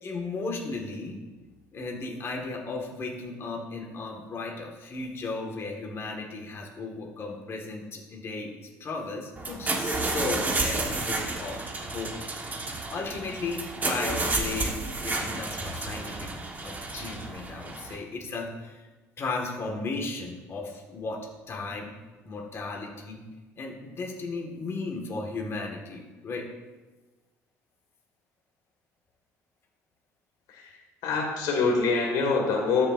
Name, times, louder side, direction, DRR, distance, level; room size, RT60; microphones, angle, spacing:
voice 1, 0.0-1.2 1.7-11.6 11.9-12.1 12.9-14.7 15.0-16.3 16.6-18.8 19.2-21.2 21.5-21.9 22.2-23.2 23.6-26.5, left 3 dB, 40° left, 0 dB, 1.6 m, -35 dB
sound 1, 9.4-18.0, right 2 dB, 25° right, 1.3 m, -31 dB
voice 2, 30.5-32.9, left 4 dB, 80° left, 1 dB, 1.7 m, -25 dB
13.5 x 6.7 x 2.6 m, 1.2 s
cardioid pair, 95°, 6 cm